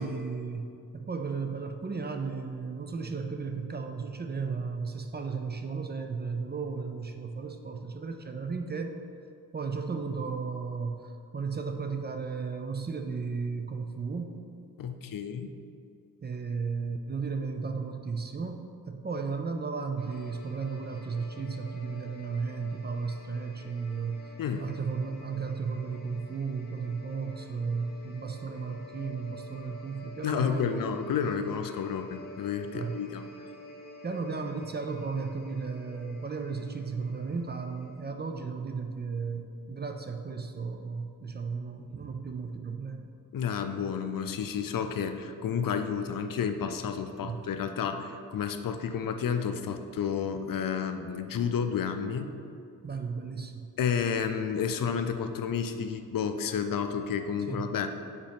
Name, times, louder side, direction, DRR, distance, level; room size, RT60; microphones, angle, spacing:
voice 1, 0.0-9.0 9.5-14.3 16.2-24.3 24.6-30.9 32.7-33.0 34.0-43.1 47.2-47.5 52.8-53.7 57.5-57.8, right 5 dB, 30° right, 5 dB, 0.4 m, -34 dB
voice 2, 14.8-15.5 24.4-24.7 30.2-33.3 43.3-52.3 53.8-57.9, left 7 dB, 70° left, 8 dB, 0.5 m, -31 dB
sound 1, 20.0-38.0, left 1 dB, 30° left, 0.7 m, -49 dB
5.2 x 4.1 x 5.1 m, 2.4 s
wide cardioid pair, 100°, 35 cm